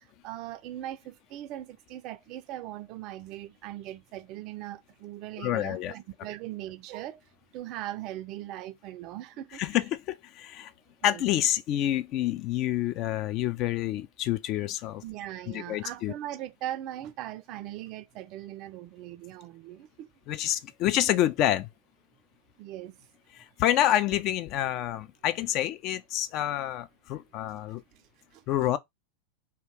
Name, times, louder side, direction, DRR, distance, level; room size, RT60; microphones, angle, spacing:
voice 1, 0.0-7.2 7.5-9.6 11.1-11.2 15.0-20.1 22.6-23.0 27.9-28.0 28.3-28.4, right 13 dB, 40° right, 0.3 m, -40 dB
voice 2, 5.4-5.9 9.6-10.7 11.0-15.0 15.5-16.1 20.3-21.7 23.3-27.8 28.5-28.8, left 12 dB, 40° left, 0.3 m, -28 dB
2.8 x 2.4 x 3.4 m
figure-of-eight pair, 90°, 0 cm